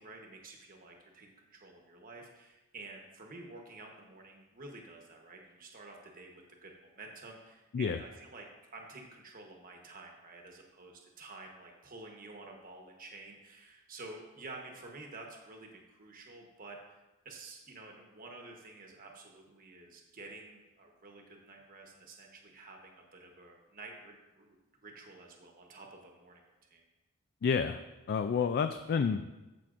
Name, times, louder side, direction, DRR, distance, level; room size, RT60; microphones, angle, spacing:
voice 1, 0.0-8.5 8.7-16.8 17.2-24.6 24.8-26.4 26.7-26.8, right 2 dB, 40° right, 1 dB, 1.1 m, -50 dB
voice 2, 27.4-27.8 28.1-29.3, left 6 dB, 50° left, 9 dB, 0.3 m, -29 dB
14.0 x 5.8 x 2.5 m, 1.1 s
head